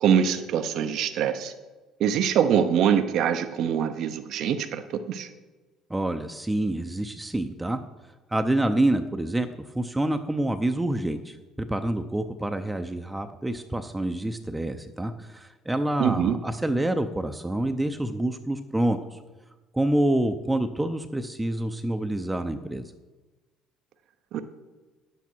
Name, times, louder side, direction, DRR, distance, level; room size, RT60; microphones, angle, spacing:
voice 1, 0.0-1.5 2.0-5.3 16.0-16.4 24.3-24.4, right 8 dB, 65° right, 8 dB, 0.7 m, -24 dB
voice 2, 5.9-7.8 8.3-19.2 19.7-22.9, right 1 dB, 10° right, 7 dB, 0.7 m, -27 dB
9.9 x 8.3 x 4.5 m, 1.2 s
hypercardioid pair, 65°, 0 cm